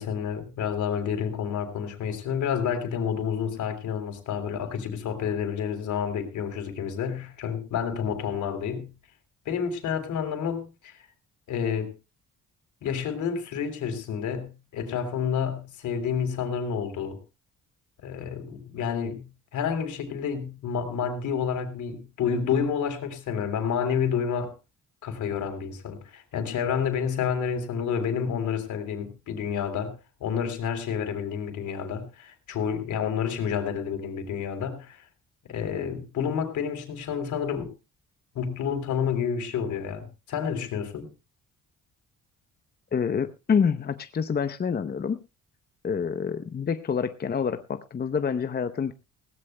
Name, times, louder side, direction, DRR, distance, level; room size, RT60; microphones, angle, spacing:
voice 1, 0.0-8.9 9.4-11.0 11.5-11.9 12.8-17.2 18.0-24.5 25.0-35.1 35.4-37.7 38.3-41.1, left 7 dB, 75° left, 3.4 m, -29 dB
voice 2, 42.9-45.2 45.8-48.9, left 6 dB, 30° left, 0.7 m, -27 dB
20.0 x 17.0 x 2.2 m
cardioid pair, 90°, 30 cm